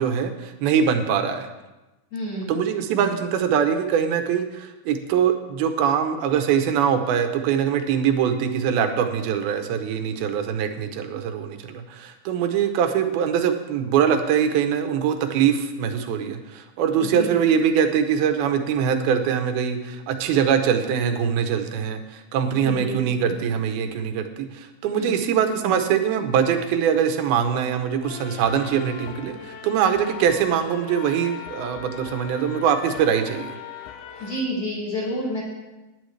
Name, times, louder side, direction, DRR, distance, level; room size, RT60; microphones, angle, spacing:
voice 1, 0.0-1.5 2.5-33.6, right 8 dB, 75° right, 7 dB, 2.7 m, -23 dB
voice 2, 2.1-2.6 17.0-17.4 22.5-23.0 24.9-25.2 34.2-35.4, left 1 dB, 40° left, -5 dB, 5.8 m, -29 dB
sound 1, 28.0-34.4, left 7 dB, 80° left, 1.8 m, -39 dB
17.0 x 10.0 x 3.3 m, 1.1 s
omnidirectional pair, 4.6 m